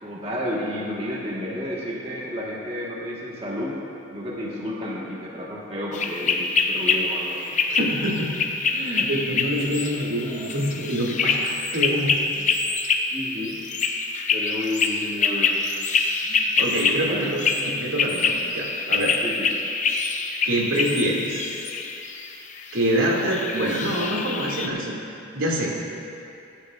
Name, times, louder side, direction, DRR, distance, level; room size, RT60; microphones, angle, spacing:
voice 1, 0.0-3.8 4.1-7.5 12.3-12.5 13.1-13.6 14.3-15.7 17.1-17.3 19.2-19.5, left 1 dB, 30° right, -5 dB, 1.5 m, -31 dB
sound 1, 5.9-24.7, left 4 dB, 35° left, 0.6 m, -26 dB
voice 2, 7.7-8.4 8.7-12.2 16.2-19.2 20.4-21.6 22.7-25.0 25.3-25.7, right 1 dB, 90° right, -4 dB, 2.4 m, -26 dB
21.0 x 10.5 x 2.5 m, 2.6 s
head